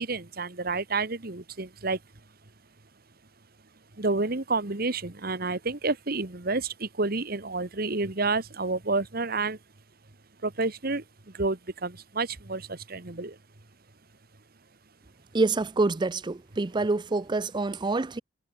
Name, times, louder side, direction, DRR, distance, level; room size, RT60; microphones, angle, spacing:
voice 1, 0.0-2.0 4.0-9.6 10.4-11.0 11.4-13.4, right 3 dB, 50° right, 1.8 m, -29 dB
voice 2, 15.3-18.2, right 3 dB, 25° right, 0.5 m, -26 dB
head